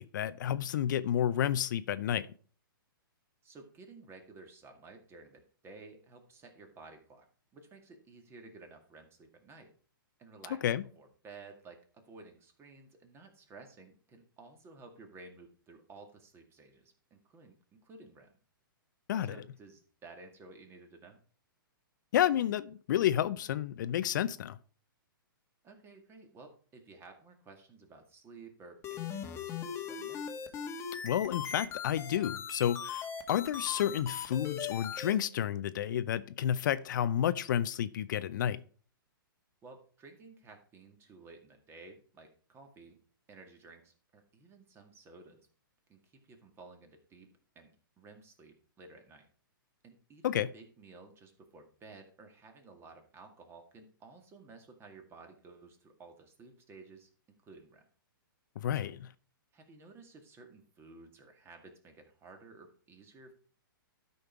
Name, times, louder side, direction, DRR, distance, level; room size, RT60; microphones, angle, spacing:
voice 1, 0.0-2.3 10.6-10.8 19.1-19.4 22.1-24.6 31.0-38.6 50.2-50.5 58.6-59.0, left 10 dB, 55° left, 0.5 m, -30 dB
voice 2, 3.4-7.3 7.5-9.7 10.2-18.3 19.2-21.2 25.6-30.2 39.6-43.0 43.3-45.5 45.9-47.3 47.6-49.3 49.8-57.1 57.4-57.8 58.7-58.9 59.5-63.3, right 3 dB, 20° right, 2.0 m, -54 dB
sound 1, 28.8-35.1, left 7 dB, 20° left, 1.2 m, -39 dB
12.5 x 5.4 x 4.6 m
hypercardioid pair, 125°, 12 cm